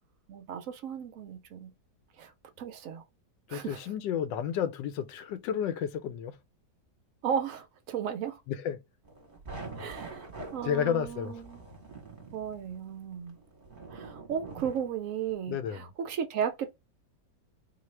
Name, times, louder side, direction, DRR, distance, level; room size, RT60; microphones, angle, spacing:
voice 1, 0.3-1.7 2.2-2.3 2.6-3.0 3.5-3.8 7.2-8.4 9.8-11.6 12.3-13.4 13.9-16.8, right 8 dB, 70° right, 0.8 m, -35 dB
voice 2, 3.5-6.4 8.5-8.8 10.6-11.4 15.5-15.8, left 8 dB, 85° left, 1.2 m, -31 dB
sound 1, 9.0-15.3, right 3 dB, 35° right, 1.0 m, -45 dB
4.0 x 2.4 x 3.2 m
omnidirectional pair, 1.9 m